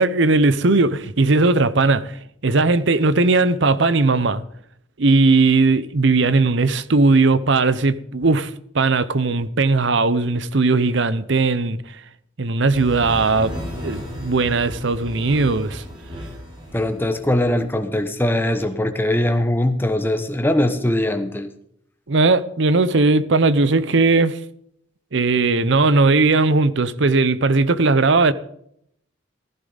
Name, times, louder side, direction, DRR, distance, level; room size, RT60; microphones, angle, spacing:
voice 1, 0.0-2.2 2.4-4.4 5.0-11.8 12.4-13.5 13.8-15.8 22.1-24.4 25.1-28.3, right 3 dB, 60° right, 0.7 m, -18 dB
sound 1, 12.7-17.5, equal, 25° right, 3.4 m, -34 dB
voice 2, 16.7-21.5, left 1 dB, 10° left, 1.0 m, -21 dB
15.0 x 15.0 x 4.0 m
head